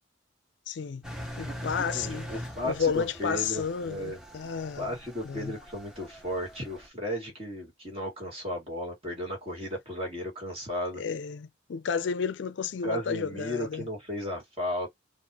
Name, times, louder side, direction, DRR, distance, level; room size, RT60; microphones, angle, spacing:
voice 1, 0.7-1.0 1.4-2.3 2.6-5.0 5.2-5.5 11.0-13.9, left 6 dB, 65° left, 0.4 m, -31 dB
Engine, 1.0-6.9, equal, 5° right, 0.7 m, -42 dB
voice 2, 1.4-4.2 4.8-11.0 12.8-14.9, equal, 30° right, 1.8 m, -35 dB
4.1 x 2.5 x 2.9 m
head